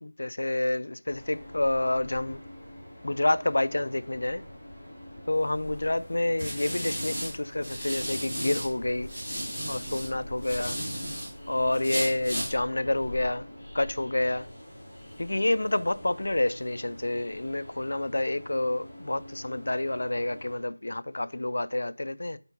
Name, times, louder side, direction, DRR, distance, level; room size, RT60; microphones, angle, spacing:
voice 1, 0.0-2.4 3.0-4.4 5.3-9.1 9.7-10.8 11.5-13.5 13.7-14.5 15.2-22.4, left 2 dB, 60° left, 0.5 m, -28 dB
Train, 1.1-20.6, left 1 dB, 5° left, 3.1 m, -45 dB
sound 1, 5.5-8.7 9.0-11.3 11.7-12.5, equal, 10° right, 2.2 m, -34 dB
8.0 x 4.4 x 5.3 m
figure-of-eight pair, 175°, 0 cm